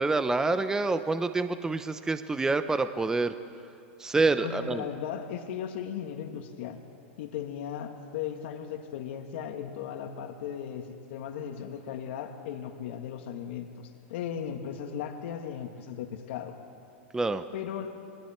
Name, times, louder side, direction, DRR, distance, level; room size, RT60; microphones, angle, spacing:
voice 1, 0.0-3.3 4.0-4.9 17.1-17.4, right 3 dB, 10° right, 10 dB, 0.7 m, -27 dB
voice 2, 4.4-6.8 7.2-16.6 17.5-17.9, left 9 dB, 65° left, 5 dB, 2.0 m, -37 dB
28.5 x 22.5 x 4.5 m, 2.5 s
hypercardioid pair, 130°, 7 cm